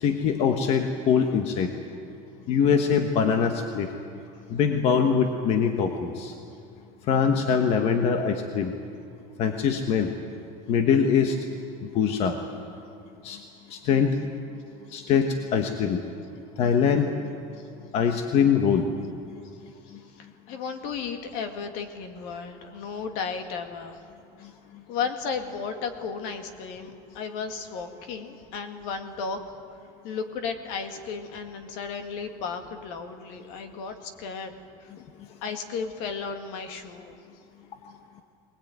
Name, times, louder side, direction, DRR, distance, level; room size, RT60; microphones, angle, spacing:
voice 1, 0.0-1.7 2.5-3.9 4.5-6.3 7.1-8.7 9.4-10.1 10.7-11.4 11.9-12.4 13.2-13.4 13.7-14.2 14.9-16.0 16.6-17.1 17.9-18.9, left 7 dB, 40° left, 5 dB, 1.3 m, -23 dB
voice 2, 19.8-24.0 24.4-24.5 24.9-29.4 30.0-34.5 34.8-34.9 35.4-37.1, left 5 dB, 60° left, 7 dB, 2.1 m, -34 dB
20.5 x 20.0 x 9.3 m, 2.5 s
cardioid pair, 170°, 16 cm